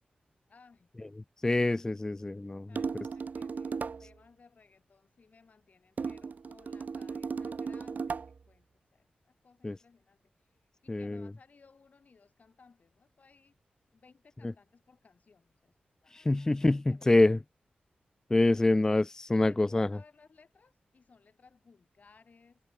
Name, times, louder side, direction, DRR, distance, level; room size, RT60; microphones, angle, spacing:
voice 1, 0.5-0.9 2.7-8.2 8.5-8.7 8.9-13.5 13.9-15.7 16.0-17.3 19.3-22.6, left 4 dB, 55° left, 5.6 m, -61 dB
voice 2, 1.4-2.7 9.6-9.8 10.9-11.3 16.1-17.4 18.3-19.9, left 2 dB, 20° left, 0.4 m, -26 dB
sound 1, 2.8-4.1 6.0-8.4, right 5 dB, 60° right, 1.4 m, -36 dB
wide cardioid pair, 110°, 3 cm